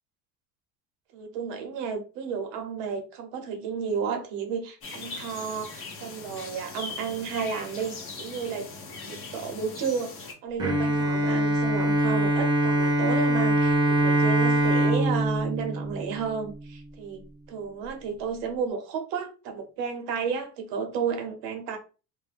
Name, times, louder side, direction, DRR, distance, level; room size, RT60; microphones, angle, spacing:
voice 1, 1.1-8.7 9.0-21.8, right 6 dB, 70° right, 0.7 m, -32 dB
sound 1, 4.8-10.3, left 3 dB, 40° left, 0.7 m, -40 dB
Bowed string instrument, 10.6-16.8, right 1 dB, 15° right, 0.3 m, -23 dB
2.4 x 2.1 x 3.3 m
cardioid pair, 170°, 34 cm